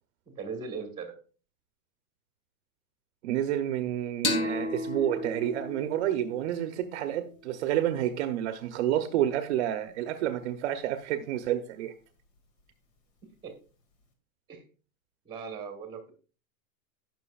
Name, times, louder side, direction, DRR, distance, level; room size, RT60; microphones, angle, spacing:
voice 1, 0.3-1.1 13.4-13.5 14.5-14.6 15.2-16.2, right 5 dB, 10° right, 1.3 m, -38 dB
voice 2, 3.2-11.9, right 11 dB, 55° right, 0.8 m, -29 dB
sound 1, 4.2-7.6, left 2 dB, 50° left, 1.9 m, -34 dB
17.0 x 6.1 x 2.4 m
supercardioid pair, 170°, 43 cm